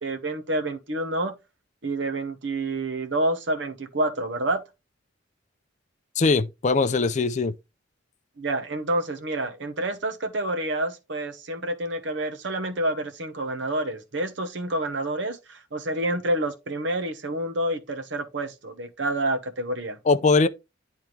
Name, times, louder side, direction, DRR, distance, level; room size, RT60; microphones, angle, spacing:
voice 1, 0.0-1.3 1.8-4.6 8.4-20.0, right 1 dB, 65° right, 1.0 m, -28 dB
voice 2, 6.2-7.5 20.1-20.5, left 4 dB, 40° left, 0.4 m, -21 dB
10.5 x 3.5 x 3.2 m
head